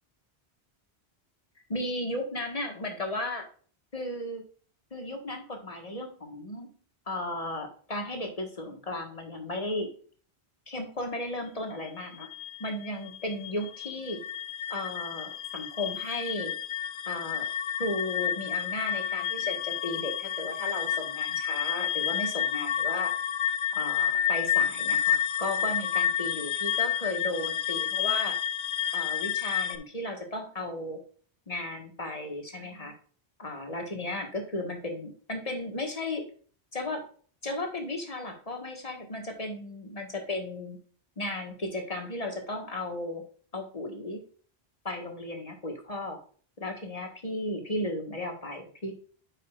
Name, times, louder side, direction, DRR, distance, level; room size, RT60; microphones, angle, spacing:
voice 1, 1.7-3.5 3.9-4.4 4.9-6.7 7.1-9.9 10.7-12.3 12.6-14.2 14.7-16.5 17.1-17.5 17.8-23.1 23.7-28.4 28.9-31.0 31.5-32.9 33.4-36.2 36.7-37.0 37.4-40.8 41.2-43.2 43.5-44.2 44.9-46.2 46.6-48.9, left 1 dB, 35° left, 3 dB, 1.7 m, -35 dB
sound 1, 11.9-29.8, left 9 dB, 85° left, 1.0 m, -30 dB
9.6 x 5.5 x 2.5 m, 0.43 s
omnidirectional pair, 1.1 m